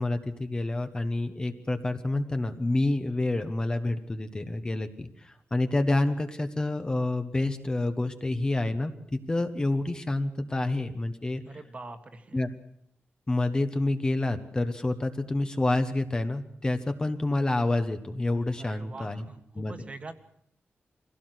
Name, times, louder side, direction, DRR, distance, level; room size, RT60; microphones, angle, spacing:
voice 1, 0.0-11.4 12.3-12.5 13.3-19.2 19.5-19.8, left 2 dB, 20° left, 7 dB, 1.1 m, -28 dB
voice 2, 11.4-12.4 18.6-20.1, right 3 dB, 30° right, 8 dB, 1.6 m, -44 dB
23.5 x 16.5 x 8.0 m, 0.70 s
wide cardioid pair, 165°, 4 cm